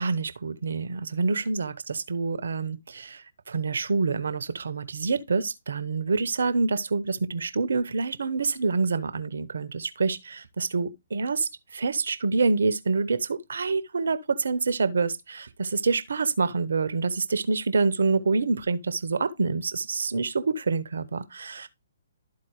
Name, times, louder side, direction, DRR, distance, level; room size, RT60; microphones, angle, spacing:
voice 1, 0.0-21.7, right 4 dB, 70° right, 0.8 m, -27 dB
12.5 x 4.2 x 3.1 m
figure-of-eight pair, 135°, 0 cm